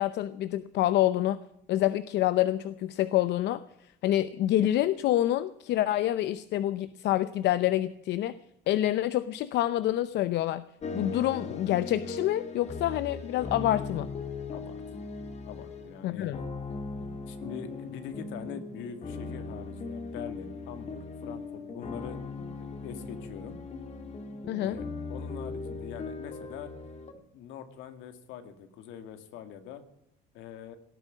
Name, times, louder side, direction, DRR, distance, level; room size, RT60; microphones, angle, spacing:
voice 1, 0.0-1.4 1.7-3.6 4.0-8.3 8.7-10.6 10.9-14.1 16.0-16.4 24.5-24.8, left 13 dB, 65° left, 14 dB, 0.7 m, -27 dB
sound 1, 10.8-27.1, left 3 dB, 35° left, 2.0 m, -39 dB
voice 2, 15.5-16.3 17.3-22.2 22.6-23.6 24.6-26.7 27.1-29.8 30.3-30.8, left 8 dB, 80° left, 9 dB, 2.2 m, -43 dB
18.0 x 9.1 x 8.4 m, 0.80 s
cardioid pair, 140°, 19 cm